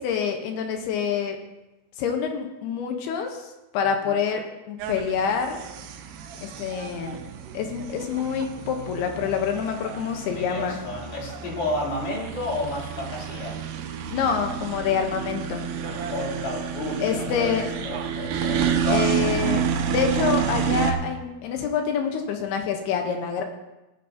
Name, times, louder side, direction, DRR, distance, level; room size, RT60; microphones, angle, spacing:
voice 1, 0.0-1.4 2.0-3.5 3.7-5.6 6.4-7.2 7.5-10.8 14.1-15.6 17.0-17.6 18.8-19.6 19.9-23.4, left 7 dB, 75° left, 4 dB, 2.9 m, -26 dB
helicopter leave, 4.8-20.9, right 8 dB, 90° right, 1.8 m, -29 dB
voice 2, 10.3-13.6 15.8-19.4, left 2 dB, 55° left, -3 dB, 3.7 m, -31 dB
16.0 x 9.1 x 2.8 m, 1.0 s
omnidirectional pair, 4.8 m